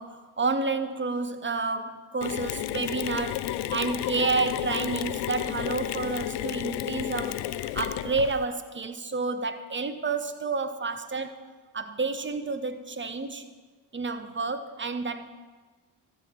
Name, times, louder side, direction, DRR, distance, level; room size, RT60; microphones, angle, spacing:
voice 1, 0.0-11.4 11.7-13.5 13.9-15.3, right 3 dB, 25° right, 10 dB, 1.0 m, -30 dB
Mechanisms, 2.2-8.4, left 13 dB, 70° left, 0.6 m, -32 dB
13.0 x 7.5 x 4.5 m, 1.3 s
hypercardioid pair, 40°, 44 cm